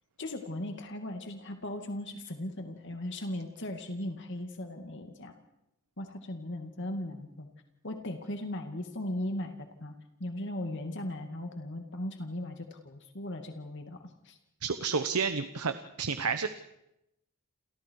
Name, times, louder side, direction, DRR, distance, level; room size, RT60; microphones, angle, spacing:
voice 1, 0.2-5.3 6.0-7.5 7.8-9.9 10.2-14.4, left 1 dB, 55° left, 4 dB, 2.4 m, -38 dB
voice 2, 14.6-16.5, right 5 dB, 80° right, 9 dB, 1.0 m, -30 dB
30.0 x 28.0 x 4.8 m, 0.87 s
head